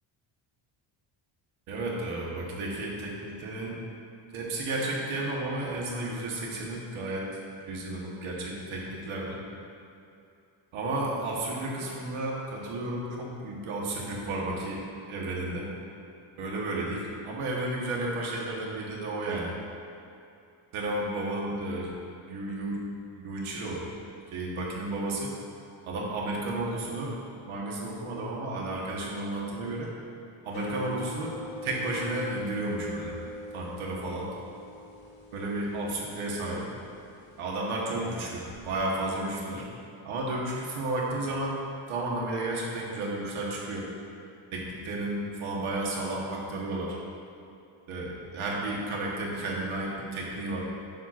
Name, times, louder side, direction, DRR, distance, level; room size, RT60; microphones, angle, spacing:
voice 1, 1.7-3.8 4.3-7.3 7.6-8.3 8.7-9.4 10.7-15.7 16.4-19.5 20.7-21.9 22.3-22.8 23.1-23.8 24.3-25.3 25.8-27.1 27.4-29.9 30.4-33.1 33.5-34.3 35.3-36.6 37.4-39.7 40.0-41.6 41.9-43.9 44.5-47.0 47.9-50.7, right 2 dB, 85° right, -3 dB, 1.3 m, -32 dB
sound 1, 30.5-37.4, left 1 dB, 85° left, 1.2 m, -41 dB
7.2 x 2.5 x 5.7 m, 2.6 s
cardioid pair, 180°, 49 cm